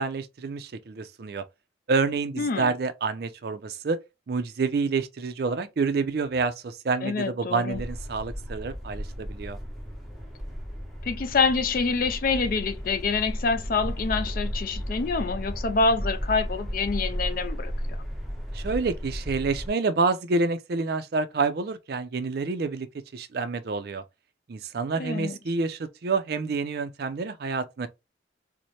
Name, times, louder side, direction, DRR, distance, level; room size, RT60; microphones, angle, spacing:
voice 1, 0.0-1.4 1.9-4.0 4.3-9.6 18.5-22.9 23.1-24.0 24.5-27.9, right 4 dB, 55° right, 0.4 m, -28 dB
voice 2, 2.4-2.7 7.0-7.8 11.0-18.0 25.0-25.4, left 4 dB, 45° left, 0.4 m, -26 dB
sound 1, 7.7-19.7, equal, ahead, 0.6 m, -34 dB
4.1 x 2.1 x 3.1 m
head